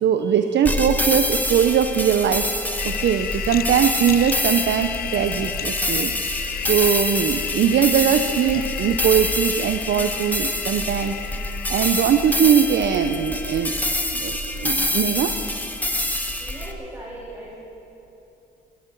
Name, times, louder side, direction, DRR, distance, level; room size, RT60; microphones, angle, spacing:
voice 1, 0.0-2.4 2.8-11.2 11.7-13.7 14.1-15.3, right 8 dB, 65° right, 7 dB, 0.7 m, -21 dB
sound 1, 0.7-16.7, left 1 dB, 10° left, 1.3 m, -26 dB
sound 2, 2.8-14.3, left 11 dB, 50° left, 0.4 m, -33 dB
voice 2, 16.3-17.5, right 1 dB, 10° right, -6 dB, 3.5 m, -38 dB
23.0 x 12.5 x 4.6 m, 2.9 s
cardioid pair, 90°, 20 cm